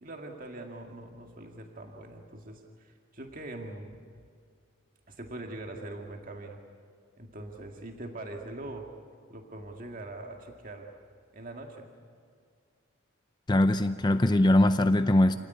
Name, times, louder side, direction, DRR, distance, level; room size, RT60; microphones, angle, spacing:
voice 1, 0.0-3.9 5.1-6.6 7.2-8.9 9.3-10.9 11.3-11.9, right 2 dB, 40° right, 2 dB, 2.1 m, -42 dB
voice 2, 13.5-15.4, left 1 dB, 20° left, 10 dB, 0.6 m, -22 dB
27.5 x 18.0 x 9.5 m, 2.2 s
head